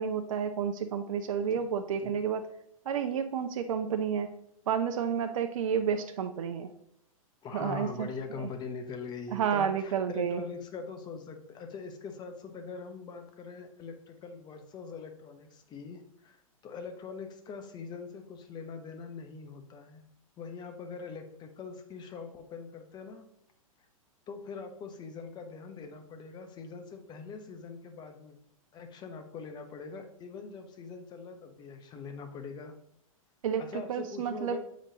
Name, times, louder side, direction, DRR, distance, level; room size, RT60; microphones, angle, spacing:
voice 1, 0.0-2.4 2.9-4.3 4.7-6.7 7.5-8.1 8.4-8.5 9.3-10.4 33.4-34.6, right 7 dB, 65° right, 8 dB, 0.5 m, -30 dB
voice 2, 7.4-16.4 16.6-20.0 20.4-23.2 24.3-28.4 28.7-32.8 33.6-34.6, left 5 dB, 25° left, 6 dB, 0.9 m, -42 dB
7.2 x 5.1 x 2.8 m, 0.74 s
hypercardioid pair, 115°, 18 cm